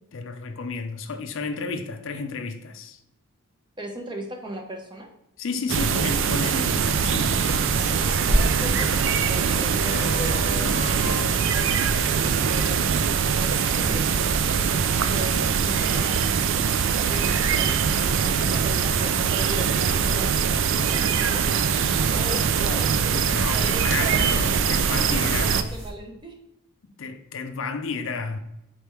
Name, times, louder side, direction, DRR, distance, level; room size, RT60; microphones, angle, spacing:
voice 1, 0.1-3.0 5.4-7.7 23.1-25.7 26.8-28.4, left 4 dB, 60° left, 0.4 m, -32 dB
voice 2, 3.8-5.1 8.3-14.3 15.1-16.4 17.0-20.3 20.6-23.2 23.5-24.3 25.0-26.4, equal, 20° right, 0.6 m, -38 dB
sound 1, 5.7-25.6, right 6 dB, 60° right, 0.3 m, -23 dB
sound 2, 6.8-12.2, left 3 dB, 90° left, 0.7 m, -38 dB
sound 3, 8.0-25.9, equal, 80° right, 1.1 m, -35 dB
4.5 x 3.4 x 2.9 m
head